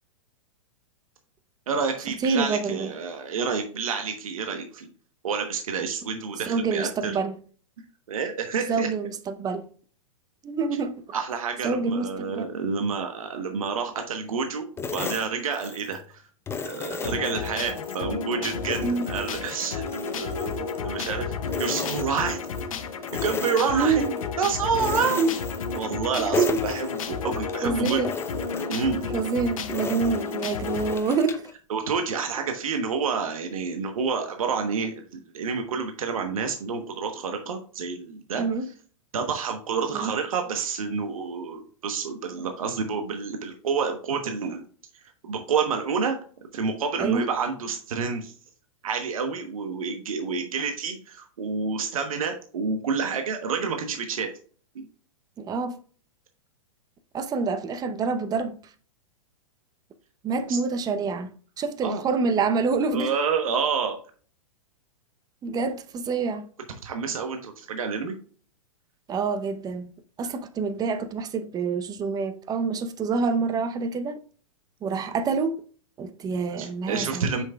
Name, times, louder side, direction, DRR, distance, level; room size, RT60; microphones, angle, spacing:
voice 1, 1.7-4.9 5.2-7.2 8.1-8.9 11.1-16.2 16.6-22.4 23.1-24.0 24.4-25.2 25.7-28.0 28.7-29.1 31.7-38.4 39.1-44.6 45.2-48.3 48.8-54.3 54.7-54.9 60.5-60.6 61.8-62.0 62.9-64.0 66.8-68.2 76.6-77.4, right 5 dB, 75° right, 1.1 m, -29 dB
voice 2, 2.2-2.9 6.5-7.3 8.7-9.6 10.4-10.9 11.6-12.5 18.8-19.1 23.7-24.1 25.2-25.3 26.3-26.6 27.6-28.1 29.1-31.5 38.4-38.7 39.9-40.1 47.0-47.2 55.4-55.8 57.1-58.6 60.2-61.3 61.6-63.1 65.4-66.5 69.1-69.9 70.2-74.2 74.8-75.5 76.0-77.3, right 4 dB, 20° right, 0.8 m, -26 dB
sound 1, 14.8-16.1 16.5-18.0 18.4-21.1 21.5-22.7 23.0-24.3 24.7-26.1 26.3-27.6 28.0-31.5, left 5 dB, 15° left, 0.7 m, -35 dB
sound 2, 17.0-31.0, left 5 dB, 75° left, 1.1 m, -32 dB
7.9 x 6.3 x 2.3 m
hypercardioid pair, 115°, 18 cm